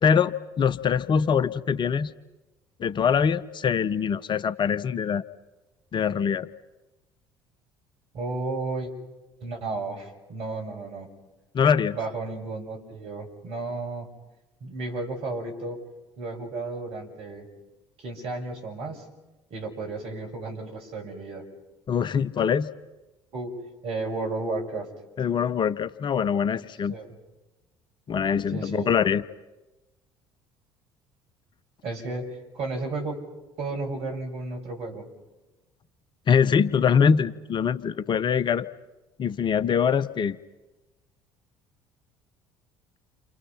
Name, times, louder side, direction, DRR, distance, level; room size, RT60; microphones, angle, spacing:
voice 1, 0.0-2.1 2.8-5.2 5.9-6.5 11.5-12.0 21.9-22.7 25.2-26.9 28.1-29.2 36.3-38.7 39.2-40.4, left 7 dB, 40° left, 16 dB, 1.0 m, -23 dB
voice 2, 8.1-8.9 9.4-11.1 11.9-14.1 14.6-15.8 16.2-17.5 18.0-19.0 19.5-21.4 23.3-23.5 23.8-24.9 26.9-27.2 28.5-28.9 31.8-33.2 33.6-35.1, right 3 dB, 55° right, 2 dB, 6.7 m, -33 dB
29.5 x 28.0 x 5.8 m, 1.1 s
figure-of-eight pair, 60°, 12 cm